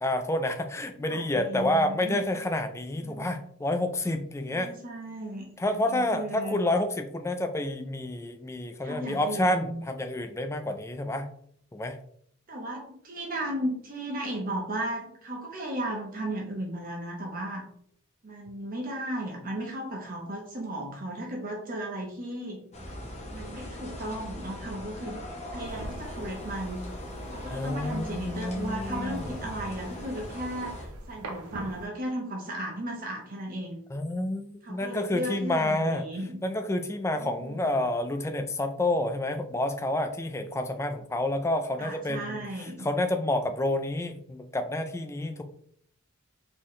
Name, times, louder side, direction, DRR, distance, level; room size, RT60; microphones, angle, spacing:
voice 1, 0.0-4.7 5.6-11.3 11.7-12.0 27.5-29.3 33.9-36.0 36.4-45.4, left 1 dB, 10° left, 7 dB, 0.4 m, -29 dB
voice 2, 1.0-2.2 3.0-3.3 4.5-6.6 8.8-9.8 12.5-17.6 18.2-22.6 23.3-25.2 25.5-26.8 27.3-33.8 34.6-36.4 37.2-37.7 41.8-42.9, right 1 dB, 40° right, 0 dB, 1.0 m, -35 dB
sound 1, 22.7-30.9, left 1 dB, 30° left, 1.0 m, -39 dB
sound 2, 25.6-31.9, right 1 dB, 85° right, 0.8 m, -45 dB
4.0 x 3.9 x 3.1 m, 0.64 s
head